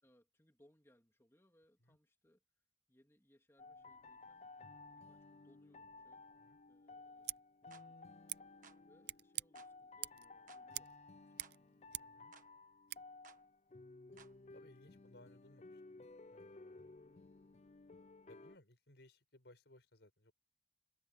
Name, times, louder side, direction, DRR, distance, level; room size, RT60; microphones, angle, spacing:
voice 1, 0.0-2.4 2.9-6.2 6.7-7.3 7.6-8.1 8.8-11.9 17.0-17.3, equal, 15° left, 2.7 m, -72 dB
sound 1, 3.6-18.6, left 3 dB, 35° left, 0.4 m, -57 dB
Scissors, 7.2-7.4 8.3-8.4 9.0-9.5 10.0-10.3 10.7-11.0 11.2-12.2 12.9-13.0, right 16 dB, 60° right, 0.5 m, -45 dB
sound 2, 7.7-7.9 8.6-8.8 9.5-9.7 10.5-10.7 11.4-11.6 12.3-12.5 13.2-13.4 14.2-14.4, right 6 dB, 45° right, 1.5 m, -61 dB
voice 2, 11.9-12.3 14.5-16.9 18.3-20.3, left 1 dB, 70° left, 5.2 m, -64 dB
head